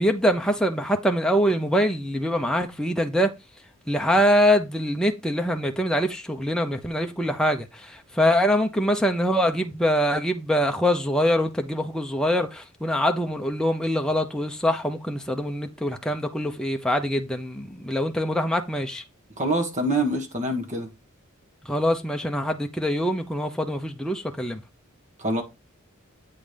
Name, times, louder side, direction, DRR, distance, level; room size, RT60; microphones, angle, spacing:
voice 1, 0.0-3.3 3.9-19.0 21.6-24.6, equal, 5° left, 0.8 m, -24 dB
voice 2, 19.4-20.9 25.2-25.4, right 1 dB, 35° right, 1.6 m, -25 dB
8.5 x 3.9 x 5.2 m
head